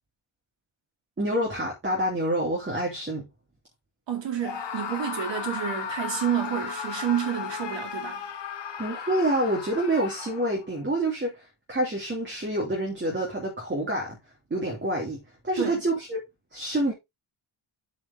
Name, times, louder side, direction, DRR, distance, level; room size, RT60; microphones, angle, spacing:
voice 1, 1.2-3.2 8.8-14.2 14.5-16.2 16.5-16.9, right 1 dB, 25° right, 3.2 m, -27 dB
voice 2, 4.1-8.2 15.6-15.8, right 9 dB, 65° right, 3.7 m, -29 dB
Screaming, 4.4-10.7, left 7 dB, 60° left, 1.8 m, -35 dB
8.0 x 6.0 x 3.6 m
wide cardioid pair, 145°, 47 cm